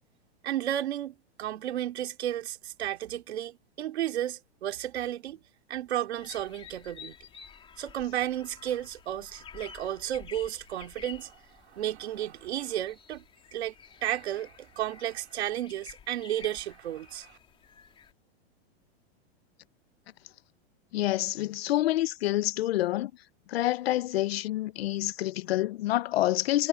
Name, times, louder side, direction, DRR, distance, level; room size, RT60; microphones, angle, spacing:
voice 1, 0.4-5.4 5.7-7.1 7.8-11.4 11.7-13.2 13.5-13.7 14.0-17.4, right 12 dB, 80° right, 2.8 m, -33 dB
sound 1, 6.2-18.1, left 7 dB, 15° left, 2.8 m, -51 dB
voice 2, 20.9-23.1 23.5-26.7, left 15 dB, 70° left, 0.8 m, -27 dB
supercardioid pair, 160°, 32 cm